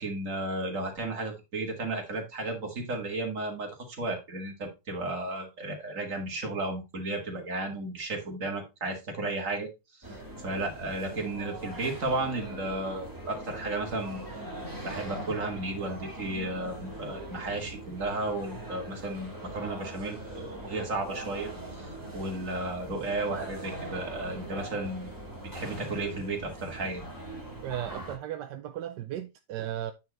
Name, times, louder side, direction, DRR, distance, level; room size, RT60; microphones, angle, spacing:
voice 1, 0.0-9.7 10.0-10.1 10.4-14.3 14.8-25.1 25.5-27.0, right 2 dB, 45° right, 2.5 m, -34 dB
sound 1, 10.0-28.2, right 1 dB, 10° right, 1.7 m, -41 dB
voice 2, 27.6-29.9, right 11 dB, 80° right, 1.3 m, -35 dB
9.3 x 4.5 x 3.9 m
omnidirectional pair, 1.9 m